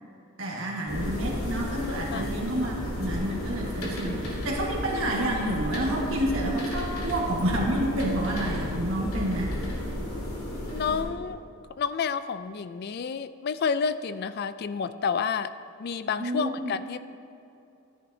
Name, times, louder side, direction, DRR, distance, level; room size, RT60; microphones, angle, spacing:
voice 1, 0.4-9.6 16.2-16.7, right 1 dB, 65° right, -2 dB, 1.6 m, -29 dB
sound 1, 0.9-11.0, left 1 dB, 80° left, 2.2 m, -32 dB
voice 2, 10.7-11.4 11.8-15.5 15.8-17.0, left 6 dB, 45° left, 13 dB, 0.3 m, -30 dB
14.0 x 10.5 x 2.7 m, 2.8 s
head